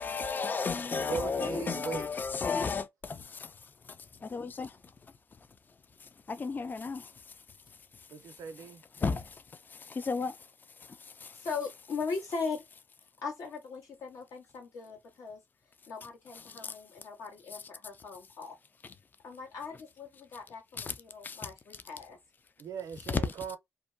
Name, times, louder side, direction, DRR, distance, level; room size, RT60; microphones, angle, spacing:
voice 1, 0.0-4.8 6.0-7.4 7.9-8.7 8.9-10.5 10.8-11.5 16.3-16.8 20.8-21.0 21.2-21.8 23.1-23.2, left 5 dB, 35° left, 0.3 m, -35 dB
voice 2, 1.1-2.1 8.1-8.8 22.6-23.6, right 6 dB, 80° right, 0.5 m, -38 dB
voice 3, 11.4-12.6 13.2-15.4 15.9-18.6 19.2-22.2, left 4 dB, 85° left, 1.3 m, -39 dB
2.5 x 2.2 x 2.5 m
cardioid pair, 65°, 6 cm